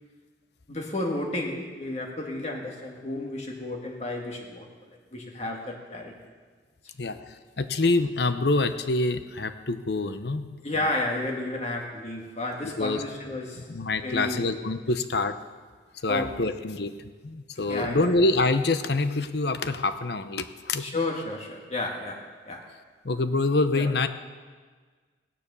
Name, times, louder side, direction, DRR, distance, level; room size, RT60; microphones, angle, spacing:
voice 1, 0.7-4.7 5.1-6.2 7.1-7.2 10.6-13.7 14.0-14.5 16.1-16.4 17.7-18.1 20.8-22.7 23.7-24.1, left 2 dB, 35° left, 1 dB, 1.7 m, -32 dB
voice 2, 7.0-10.5 12.6-13.0 13.7-15.4 16.0-16.9 17.2-20.8 23.0-24.1, left 2 dB, 65° left, 10 dB, 0.8 m, -26 dB
16.5 x 10.0 x 6.9 m, 1.5 s
head